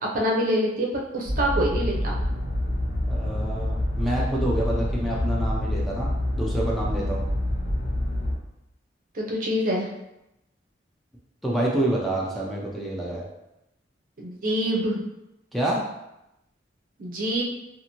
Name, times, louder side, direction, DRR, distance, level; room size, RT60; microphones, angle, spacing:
voice 1, 0.0-2.2 9.1-9.9 14.2-15.0 17.0-17.4, equal, 50° right, -2 dB, 0.6 m, -25 dB
sound 1, 1.2-8.3, left 1 dB, 55° left, 1.0 m, -27 dB
voice 2, 3.1-7.2 11.4-13.2 15.5-15.8, right 1 dB, ahead, -5 dB, 0.4 m, -27 dB
2.6 x 2.5 x 2.9 m, 0.88 s
head